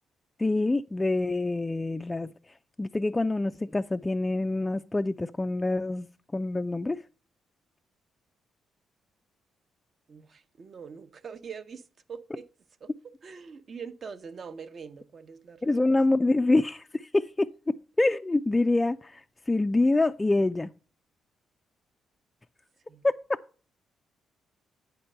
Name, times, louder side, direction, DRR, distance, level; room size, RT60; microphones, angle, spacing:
voice 1, 0.4-6.1 6.3-7.0 15.6-17.5 18.0-20.7 23.0-23.2, left 2 dB, 15° left, 0.3 m, -26 dB
voice 2, 10.1-12.5 12.8-12.9 13.2-15.7 22.9-23.1, right 6 dB, 45° right, 0.8 m, -43 dB
9.1 x 4.4 x 6.6 m
cardioid pair, 90°, 0 cm